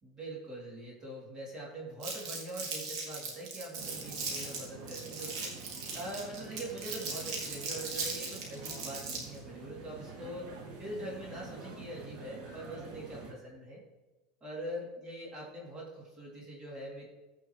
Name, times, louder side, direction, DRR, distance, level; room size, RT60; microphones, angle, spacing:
voice 1, 0.0-13.8 14.4-17.1, right 1 dB, 25° right, -4 dB, 3.0 m, -43 dB
Crumpling crinkling, 2.0-9.4, right 4 dB, 80° right, 2.8 m, -38 dB
sound 1, 3.7-13.3, right 4 dB, 60° right, 2.6 m, -48 dB
15.5 x 5.7 x 3.2 m, 1.1 s
supercardioid pair, 125°, 3 cm